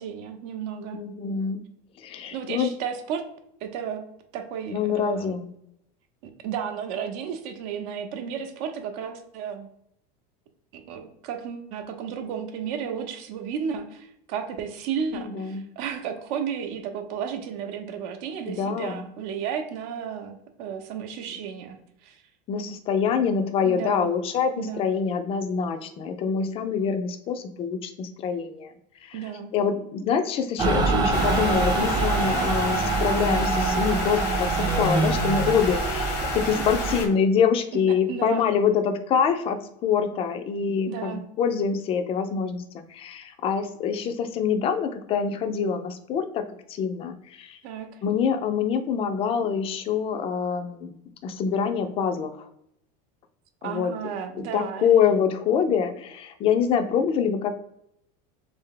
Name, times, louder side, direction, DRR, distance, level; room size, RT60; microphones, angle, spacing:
voice 1, 0.0-1.0 2.3-3.2 3.6-4.0 4.3-5.4 6.2-9.7 10.7-22.2 23.6-24.1 24.6-24.9 29.1-29.5 36.5-37.0 37.7-38.5 40.9-41.2 47.6-48.0 53.6-54.9, right 7 dB, 60° right, 6 dB, 0.7 m, -33 dB
voice 2, 0.9-1.6 2.0-2.7 4.7-5.5 15.1-15.7 18.5-19.0 22.5-28.7 29.0-29.2 29.5-46.4 46.7-47.6 48.0-50.9 51.2-52.5 53.6-53.9 54.3-57.5, left 6 dB, 30° left, 8 dB, 0.4 m, -25 dB
Mechanical fan, 30.6-37.0, right 3 dB, 20° right, 0.5 m, -24 dB
sound 1, 31.1-37.1, left 5 dB, 85° left, 1.1 m, -33 dB
3.6 x 3.4 x 3.7 m, 0.76 s
supercardioid pair, 155°, 20 cm